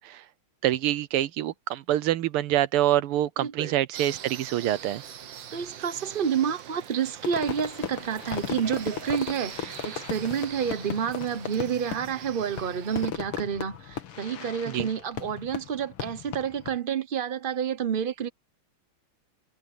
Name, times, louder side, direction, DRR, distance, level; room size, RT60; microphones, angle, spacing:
voice 1, 0.6-5.0 14.7-14.9, right 13 dB, 90° right, 1.8 m, -26 dB
voice 2, 3.4-3.7 5.5-18.3, right 7 dB, 40° right, 0.7 m, -29 dB
sound 1, 3.9-13.1, right 9 dB, 65° right, 1.7 m, -43 dB
Fireworks, 7.2-16.8, left 8 dB, 85° left, 2.4 m, -37 dB
omnidirectional pair, 2.4 m